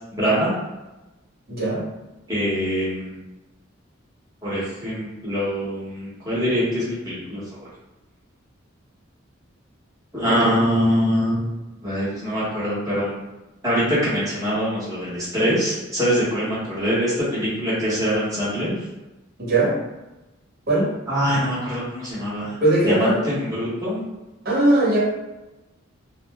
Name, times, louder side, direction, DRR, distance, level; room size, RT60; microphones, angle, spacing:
voice 1, 0.2-0.5 2.3-3.1 4.4-7.7 10.1-13.1 13.6-18.8 21.1-22.5 22.8-24.0, equal, 15° right, -10 dB, 0.9 m, -23 dB
voice 2, 1.5-1.8 19.4-19.8 20.7-20.9 22.6-23.2 24.4-25.0, right 2 dB, 50° right, -6 dB, 1.0 m, -19 dB
2.5 x 2.1 x 3.4 m, 1.0 s
head